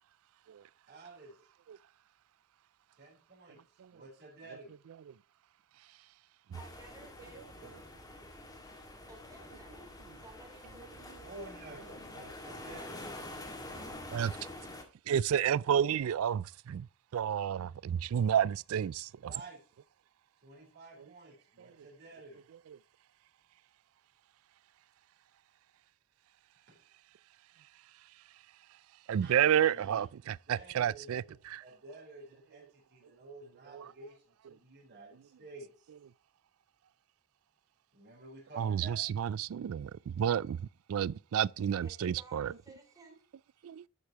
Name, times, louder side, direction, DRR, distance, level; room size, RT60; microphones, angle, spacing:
voice 1, 0.9-1.4 2.9-4.7 11.2-13.9 19.2-19.6 20.4-22.4 26.7-26.8 29.2-30.1 30.5-31.1 31.6-35.9 37.9-39.0, right 2 dB, 45° right, 3.8 m, -51 dB
sound 1, 6.5-14.8, left 1 dB, 15° left, 1.9 m, -47 dB
voice 2, 6.5-7.4 9.1-9.8 10.1-10.9 41.8-43.2, right 2 dB, 15° right, 3.2 m, -55 dB
voice 3, 15.1-16.9 17.1-19.3 29.1-31.6 33.7-33.9 38.6-40.6 40.9-42.5 43.6-43.9, right 9 dB, 65° right, 0.3 m, -30 dB
11.5 x 8.2 x 2.9 m
head